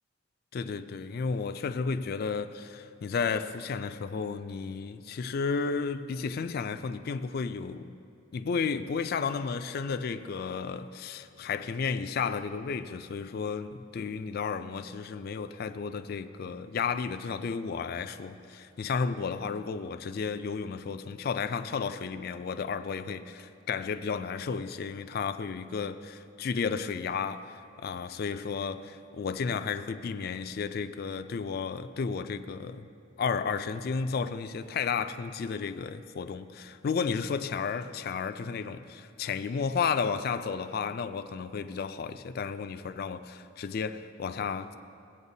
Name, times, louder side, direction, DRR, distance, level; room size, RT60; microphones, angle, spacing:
voice 1, 0.5-7.9 8.3-32.8 33.2-44.7, left 5 dB, 50° left, 0.3 m, -33 dB
17.5 x 8.7 x 2.7 m
head